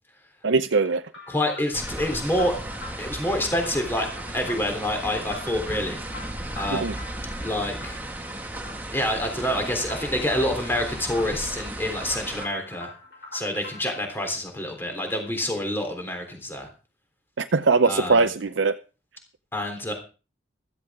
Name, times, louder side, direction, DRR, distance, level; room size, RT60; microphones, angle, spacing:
voice 1, 0.4-1.0 6.7-6.9 17.4-18.8, right 4 dB, 85° right, 0.6 m, -21 dB
sound 1, 1.1-14.1, left 2 dB, 65° left, 5.4 m, -45 dB
voice 2, 1.3-2.6 3.0-4.1 4.3-6.0 6.5-7.0 7.4-8.0 8.9-12.9 13.3-16.7 17.8-18.2 19.5-19.9, left 1 dB, 10° left, 3.4 m, -27 dB
sound 2, 1.7-12.5, right 1 dB, 10° right, 2.0 m, -35 dB
15.5 x 14.0 x 3.7 m
head